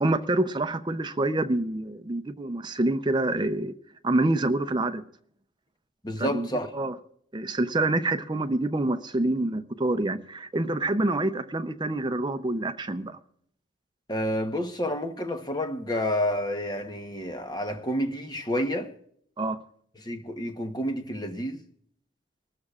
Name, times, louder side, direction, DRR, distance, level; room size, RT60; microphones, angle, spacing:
voice 1, 0.0-3.7 4.0-5.0 6.2-6.5 6.7-6.9 7.3-13.2 19.4-19.6, right 2 dB, 25° right, 0.6 m, -26 dB
voice 2, 6.0-6.7 14.1-18.9 20.0-21.6, equal, 20° left, 1.0 m, -29 dB
25.5 x 13.0 x 2.4 m
head